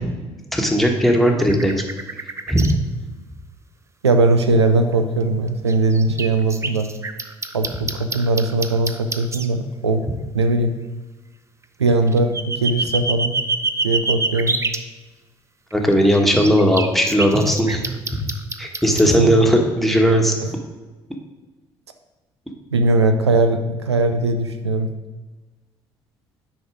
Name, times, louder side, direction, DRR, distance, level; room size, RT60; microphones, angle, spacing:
voice 1, 0.5-1.7 2.5-2.7 15.7-17.9 18.6-20.3, equal, ahead, 2 dB, 1.5 m, -17 dB
sound 1, 1.4-2.7 4.9-5.0 5.7-9.5 11.9-14.8 15.7-19.1, right 3 dB, 20° right, 0.6 m, -26 dB
voice 2, 4.0-6.9 7.5-10.0 10.3-10.7 11.8-13.4 13.8-14.6 18.9-19.3 20.4-20.5 22.7-24.9, right 2 dB, 90° right, 7 dB, 0.4 m, -19 dB
9.5 x 4.4 x 5.0 m, 1.2 s
figure-of-eight pair, 50°, 14 cm